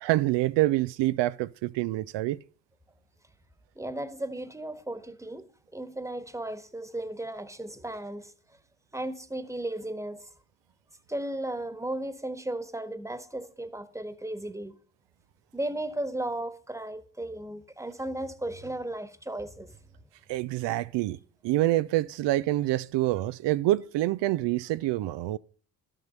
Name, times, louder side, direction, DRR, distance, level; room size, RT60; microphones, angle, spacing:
voice 1, 0.0-2.4 20.3-21.2 21.4-25.4, right 16 dB, 60° right, 0.7 m, -26 dB
voice 2, 3.7-5.4 5.7-8.3 8.9-10.3 11.1-14.7 15.5-19.8, right 1 dB, 5° right, 1.5 m, -35 dB
12.5 x 7.4 x 6.7 m
hypercardioid pair, 55°, 48 cm